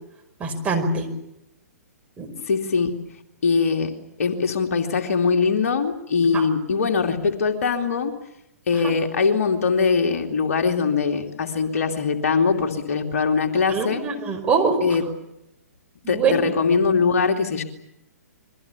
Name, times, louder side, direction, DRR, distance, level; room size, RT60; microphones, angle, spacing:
voice 1, 0.4-1.1 2.2-2.3 6.3-6.5 8.8-8.9 13.7-14.8 16.0-16.3, right 5 dB, 15° right, 2 dB, 5.3 m, -23 dB
voice 2, 2.5-3.0 3.4-3.9 4.2-8.1 8.7-14.0 14.8-15.0 16.1-17.6, left 5 dB, 60° left, 4 dB, 2.7 m, -22 dB
30.0 x 23.0 x 7.2 m, 0.86 s
figure-of-eight pair, 120°, 9 cm